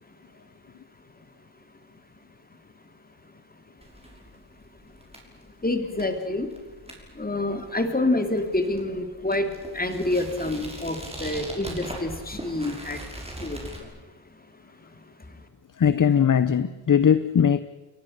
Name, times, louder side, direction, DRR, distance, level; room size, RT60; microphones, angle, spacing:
sound 1, 3.8-13.8, right 1 dB, 10° right, 6.0 m, -41 dB
voice 1, 5.6-6.5 7.2-9.5 9.7-13.0 13.4-13.6, left 2 dB, 20° left, 3.1 m, -27 dB
voice 2, 15.8-17.6, left 8 dB, 40° left, 0.8 m, -20 dB
29.5 x 23.0 x 6.6 m
wide cardioid pair, 105°, 48 cm